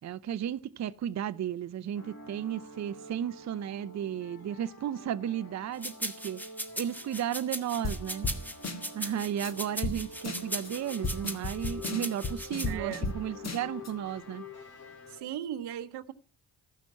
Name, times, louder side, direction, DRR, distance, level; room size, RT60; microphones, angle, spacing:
voice 1, 0.0-6.4 6.8-8.3 8.9-14.4, right 10 dB, 45° right, 0.6 m, -34 dB
sound 1, 1.9-15.2, left 2 dB, 65° left, 4.6 m, -47 dB
sound 2, 5.8-12.7, equal, 5° left, 1.5 m, -38 dB
sound 3, 7.8-8.0 8.2-8.4 8.6-9.1 9.4-9.5 9.8-10.0 10.2-10.7 11.0-13.2 13.4-13.9, left 3 dB, 40° left, 1.6 m, -34 dB
voice 2, 12.7-13.0 15.1-16.1, right 11 dB, 80° right, 0.9 m, -37 dB
14.0 x 6.0 x 5.6 m
supercardioid pair, 60°, 40 cm